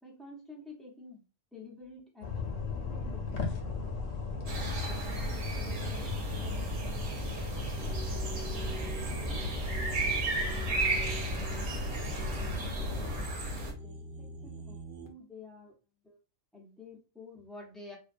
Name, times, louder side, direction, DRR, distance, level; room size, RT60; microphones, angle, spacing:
voice 1, 0.0-1.2 1.5-3.9 4.3-7.4 7.9-9.4 9.6-10.2 10.7-11.8 12.5-15.7 16.0-16.2 16.5-18.0, left 3 dB, ahead, -3 dB, 0.4 m, -51 dB
sound 1, 2.2-13.2, left 3 dB, 85° left, 1.0 m, -37 dB
sound 2, 4.5-13.7, right 2 dB, 80° right, 1.1 m, -35 dB
sound 3, 7.8-15.1, equal, 60° right, 0.7 m, -43 dB
2.6 x 2.1 x 2.4 m, 0.33 s
omnidirectional pair, 1.3 m